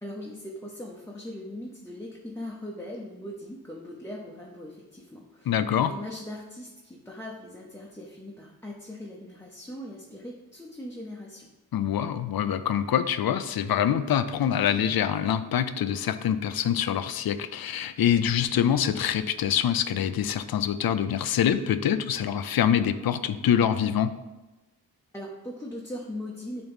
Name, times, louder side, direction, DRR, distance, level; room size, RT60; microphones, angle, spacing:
voice 1, 0.0-5.5 5.8-11.5 25.1-26.6, left 1 dB, 5° left, -3 dB, 0.8 m, -40 dB
voice 2, 5.5-5.9 11.7-24.1, left 9 dB, 70° left, 12 dB, 0.5 m, -25 dB
9.0 x 3.0 x 3.5 m, 1.1 s
wide cardioid pair, 80°, 37 cm